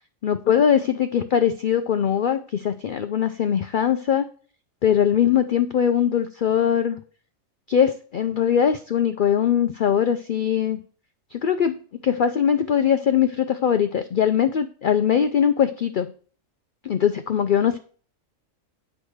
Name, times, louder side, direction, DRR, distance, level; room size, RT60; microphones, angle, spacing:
voice 1, 0.2-4.3 4.8-7.0 7.7-10.8 11.3-16.1 16.8-17.8, left 8 dB, 65° left, 9 dB, 0.5 m, -21 dB
8.8 x 4.9 x 6.3 m, 0.42 s
omnidirectional pair, 1.4 m